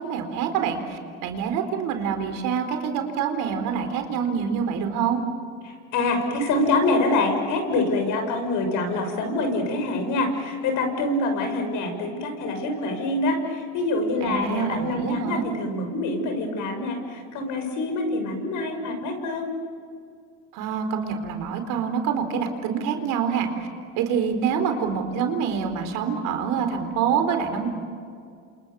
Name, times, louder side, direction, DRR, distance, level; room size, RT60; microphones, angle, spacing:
voice 1, 0.0-5.2 14.2-15.5 20.5-23.5 24.0-27.7, right 7 dB, 65° right, 6 dB, 4.2 m, -26 dB
voice 2, 5.6-19.5, left 2 dB, 60° left, 5 dB, 6.6 m, -25 dB
29.0 x 28.0 x 7.1 m, 2.2 s
supercardioid pair, 110°, 35 cm